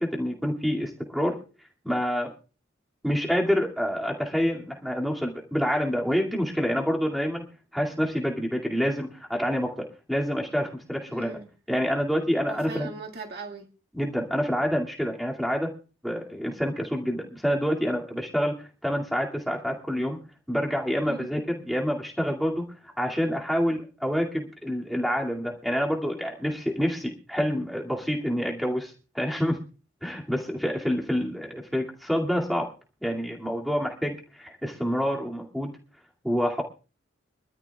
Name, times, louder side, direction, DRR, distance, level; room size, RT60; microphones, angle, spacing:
voice 1, 0.0-1.4 1.8-2.3 3.0-7.4 7.7-11.4 11.7-12.9 13.9-15.7 16.0-20.2 20.5-29.6 30.0-32.7 33.0-35.7 36.2-36.6, equal, ahead, -1 dB, 2.4 m, -27 dB
voice 2, 11.1-11.5 12.5-13.7 21.1-21.3, right 3 dB, 50° right, 2 dB, 1.9 m, -39 dB
25.0 x 13.0 x 2.4 m, 0.35 s
head